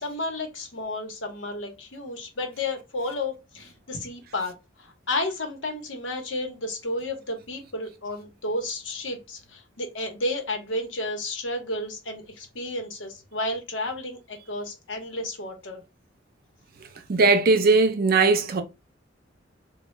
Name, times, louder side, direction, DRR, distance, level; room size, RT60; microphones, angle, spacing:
voice 1, 0.0-15.8, left 2 dB, 75° left, 1.0 m, -32 dB
voice 2, 17.1-18.6, right 3 dB, 50° right, 0.5 m, -19 dB
3.2 x 2.2 x 3.1 m
head